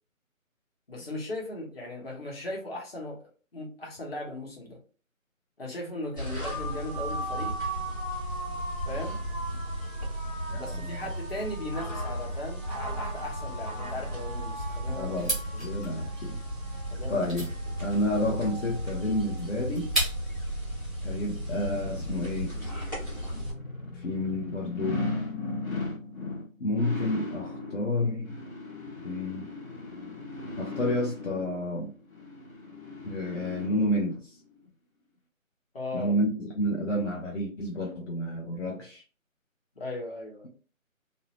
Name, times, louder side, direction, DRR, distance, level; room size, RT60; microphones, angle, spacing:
voice 1, 0.9-3.2 3.5-4.8 5.6-7.5 8.9-9.2 10.6-15.2 16.9-17.3 35.7-36.1 39.8-40.5, left 1 dB, 45° left, -1 dB, 1.0 m, -37 dB
sound 1, 6.2-23.5, right 1 dB, 15° left, 0.9 m, -34 dB
voice 2, 10.5-11.1 15.0-16.4 17.1-17.5 17.8-19.9 21.0-22.5 23.9-25.1 26.6-28.4 29.0-29.5 30.6-31.9 33.0-34.4 35.9-39.0, left 1 dB, 60° left, -1 dB, 0.7 m, -30 dB
sound 2, 15.2-20.4, right 1 dB, ahead, 0.4 m, -35 dB
sound 3, 20.3-34.2 34.7-34.8, left 3 dB, 90° left, 1.0 m, -38 dB
2.7 x 2.0 x 2.8 m, 0.37 s
figure-of-eight pair, 160°, 41 cm